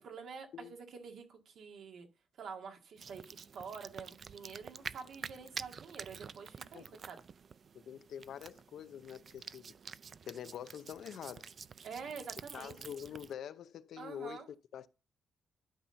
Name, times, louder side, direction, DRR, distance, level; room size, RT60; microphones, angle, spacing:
voice 1, 0.0-2.1 2.4-7.2 11.8-12.8 14.0-14.5, right 5 dB, 70° right, 1.9 m, -47 dB
sound 1, 3.0-13.3, right 6 dB, 50° right, 0.4 m, -49 dB
voice 2, 7.7-9.7 10.3-11.5 12.5-14.9, left 9 dB, 75° left, 0.5 m, -46 dB
11.5 x 4.2 x 5.7 m
cardioid pair, 110°, 0 cm